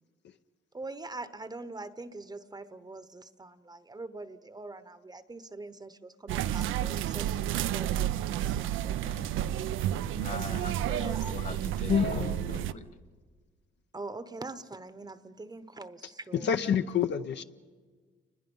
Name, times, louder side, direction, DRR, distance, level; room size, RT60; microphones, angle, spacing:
voice 1, 0.7-9.0 10.9-11.4 13.9-16.5, right 2 dB, 20° right, 13 dB, 0.9 m, -43 dB
sound 1, 6.3-12.7, right 12 dB, 85° right, 0.6 m, -31 dB
voice 2, 9.0-9.5 10.1-12.8, left 4 dB, 40° left, 10 dB, 1.5 m, -41 dB
voice 3, 11.9-12.3 16.3-17.4, left 8 dB, 65° left, 8 dB, 0.7 m, -27 dB
29.5 x 21.0 x 5.4 m, 1.5 s
cardioid pair, 90°, 20 cm